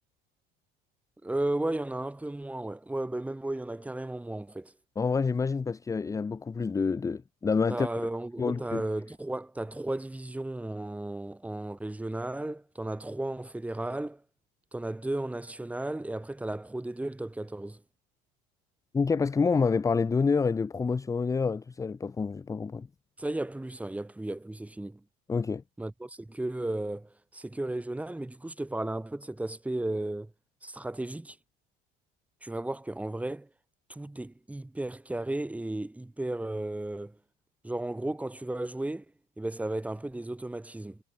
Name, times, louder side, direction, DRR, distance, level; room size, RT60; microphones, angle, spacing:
voice 1, 1.2-4.7 7.7-14.2 14.7-17.8 23.2-25.0 25.8-30.3 30.6-31.4 32.4-33.5 33.9-37.2 37.6-39.1 39.4-41.0, right 1 dB, 5° right, 3.8 m, -34 dB
voice 2, 5.0-7.9 8.4-8.8 18.9-22.9 25.3-25.6, left 5 dB, 15° left, 0.7 m, -27 dB
cardioid pair, 115°, 19 cm